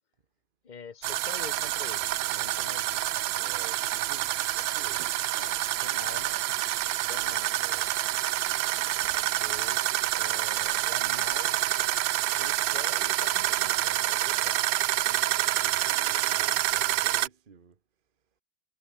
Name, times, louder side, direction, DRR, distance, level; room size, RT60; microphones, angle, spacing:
voice 1, 0.6-3.1 5.4-6.5 7.0-7.6 9.1-9.8 10.2-11.6 12.3-14.6, left 6 dB, 25° left, 1.3 m, -45 dB
sound 1, 1.0-17.3, right 15 dB, 85° right, 1.4 m, -27 dB
voice 2, 3.3-5.3 7.1-7.9 15.0-17.8, right 6 dB, 30° right, 1.4 m, -50 dB
omnidirectional pair, 2.0 m